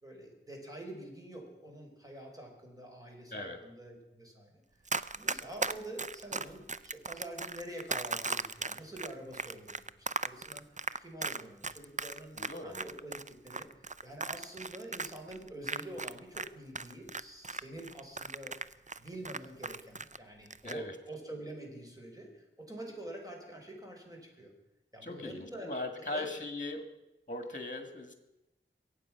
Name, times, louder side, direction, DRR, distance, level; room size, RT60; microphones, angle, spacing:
voice 1, 0.0-4.6 5.1-10.6 11.0-13.7 14.0-18.6 19.0-24.5 24.9-25.7 26.1-26.3, right 1 dB, 15° right, 0 dB, 4.3 m, -46 dB
voice 2, 3.3-3.6 12.4-12.8 20.6-21.0 25.0-26.8 27.3-28.1, left 2 dB, 40° left, 7 dB, 1.9 m, -39 dB
Run, 4.9-16.5 16.7-20.2 20.5-20.8, right 3 dB, 35° right, 0.5 m, -37 dB
22.5 x 8.8 x 5.9 m, 0.94 s
wide cardioid pair, 45°, 21 cm